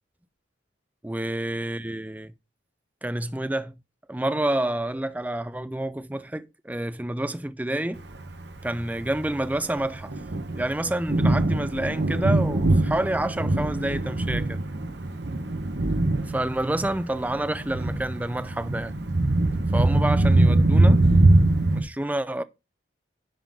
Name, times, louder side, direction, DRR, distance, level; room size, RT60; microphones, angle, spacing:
voice 1, 1.0-2.3 3.0-3.7 4.1-8.0 8.6-10.1 10.5-14.6 16.2-18.9 19.7-21.1 21.7-22.4, right 1 dB, 10° right, 0.4 m, -28 dB
Thunder, 8.2-21.8, right 2 dB, 55° right, 1.0 m, -22 dB
10.5 x 3.9 x 5.4 m
head